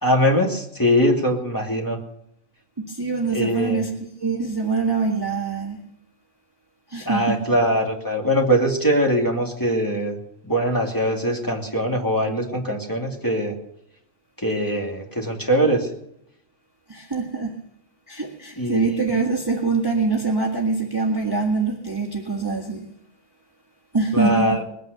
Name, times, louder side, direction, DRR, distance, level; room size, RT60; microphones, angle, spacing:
voice 1, 0.0-2.0 3.3-3.8 7.1-10.2 10.5-13.6 14.4-15.9 18.6-19.1 24.1-24.6, equal, 15° left, 0 dB, 2.7 m, -22 dB
voice 2, 2.8-3.9 4.2-5.8 6.9-7.4 16.9-17.6 18.1-22.9 23.9-24.6, right 4 dB, 20° right, 0 dB, 1.5 m, -24 dB
21.0 x 9.4 x 6.8 m, 0.76 s
omnidirectional pair, 1.4 m